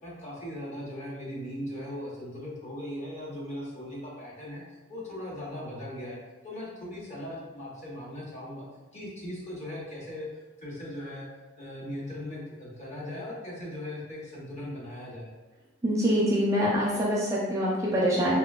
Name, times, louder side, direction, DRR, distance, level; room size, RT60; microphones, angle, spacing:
voice 1, 0.0-4.6 4.9-6.2 6.4-8.7 8.9-10.3 10.6-11.3 11.6-15.3, left 1 dB, 35° left, -5 dB, 0.8 m, -38 dB
voice 2, 15.8-18.4, equal, 15° right, -6 dB, 0.5 m, -25 dB
3.5 x 2.6 x 2.3 m, 1.2 s
head